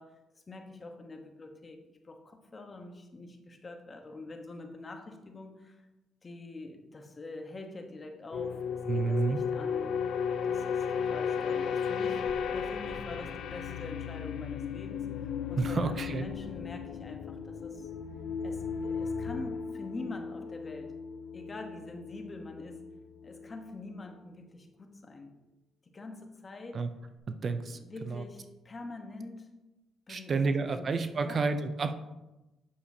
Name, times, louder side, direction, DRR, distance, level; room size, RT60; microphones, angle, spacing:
voice 1, 0.0-5.8 6.2-17.9 18.4-20.9 21.3-22.9 23.2-25.3 25.9-26.9 27.7-29.5 30.1-31.5, left 2 dB, 30° left, 4 dB, 1.1 m, -45 dB
sound 1, 8.3-23.0 23.2-23.5, left 7 dB, 70° left, 0.5 m, -35 dB
voice 2, 8.9-9.4 15.6-16.2 26.7-26.9 27.4-27.8 28.1-28.2 30.1-32.0, right 4 dB, 45° right, 10 dB, 0.5 m, -30 dB
8.5 x 6.6 x 2.8 m, 1.0 s
cardioid pair, 90°, 0 cm